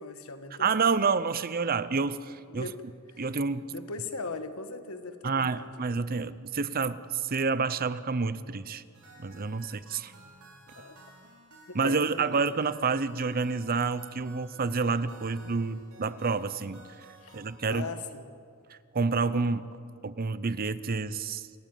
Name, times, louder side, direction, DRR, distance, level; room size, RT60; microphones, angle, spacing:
voice 1, 0.0-0.7 2.5-2.8 3.1-3.3 3.7-5.8 10.7-11.0 11.7-12.4 17.2-17.4 17.7-18.2, left 3 dB, 75° left, 9 dB, 1.6 m, -39 dB
voice 2, 0.6-2.7 3.2-3.7 5.2-8.8 9.2-10.1 11.7-16.9 17.3-17.9 18.7-19.6 20.0-21.5, right 4 dB, 45° right, 15 dB, 0.7 m, -29 dB
sound 1, 8.9-17.5, right 2 dB, 80° right, 5.9 m, -54 dB
28.5 x 14.0 x 9.2 m, 2.2 s
head